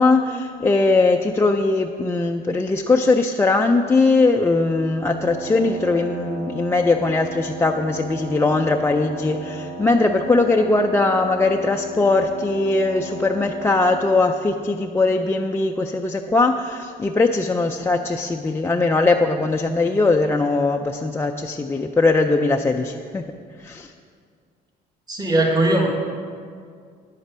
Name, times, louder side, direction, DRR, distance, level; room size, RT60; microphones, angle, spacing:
voice 1, 0.0-23.3 23.6-23.9, left 3 dB, 15° left, 2 dB, 0.4 m, -20 dB
Wind instrument woodwind instrument, 5.0-14.4, right 2 dB, 45° right, 1.5 m, -35 dB
voice 2, 25.1-25.9, right 1 dB, 25° right, 1 dB, 1.5 m, -19 dB
10.0 x 8.0 x 5.0 m, 2.1 s
cardioid pair, 110°, 17 cm